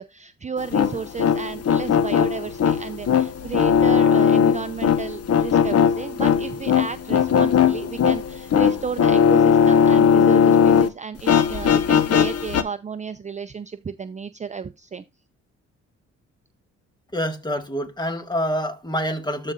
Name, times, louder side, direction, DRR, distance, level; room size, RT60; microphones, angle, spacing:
voice 1, 0.0-15.0, right 6 dB, 25° right, 0.6 m, -33 dB
sound 1, 0.6-10.9 11.2-12.6, left 7 dB, 55° left, 1.1 m, -18 dB
voice 2, 17.1-19.5, equal, 15° left, 1.8 m, -26 dB
13.0 x 4.9 x 2.5 m
cardioid pair, 90°, 30 cm